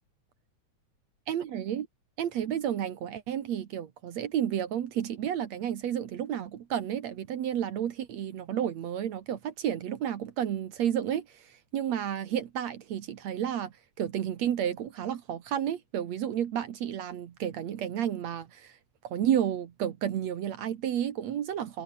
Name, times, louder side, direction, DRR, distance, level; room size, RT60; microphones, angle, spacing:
voice 1, 1.3-1.9 2.2-18.7 19.0-21.8, right 10 dB, 65° right, 2.5 m, -31 dB
omnidirectional pair, 3.5 m